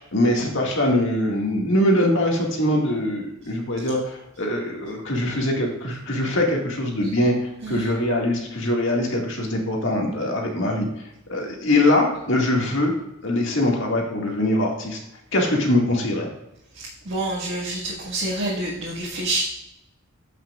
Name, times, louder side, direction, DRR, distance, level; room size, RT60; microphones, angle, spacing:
voice 1, 0.1-10.9 11.3-12.9 13.2-15.0 15.3-16.3, left 1 dB, 65° left, 0 dB, 1.9 m, -22 dB
voice 2, 7.6-7.9 17.1-19.4, right 2 dB, 65° right, -6 dB, 1.6 m, -27 dB
14.0 x 5.9 x 2.4 m, 0.86 s
head